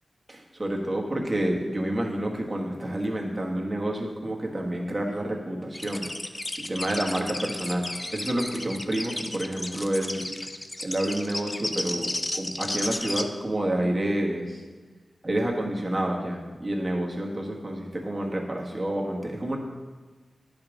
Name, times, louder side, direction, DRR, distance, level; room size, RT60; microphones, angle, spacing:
voice 1, 0.3-6.1 6.7-10.3 10.8-14.6 15.2-19.6, right 1 dB, 30° right, 0 dB, 1.3 m, -29 dB
sound 1, 5.7-13.2, left 1 dB, 25° left, 0.5 m, -33 dB
10.5 x 5.2 x 3.7 m, 1.3 s
wide cardioid pair, 70°, 0 cm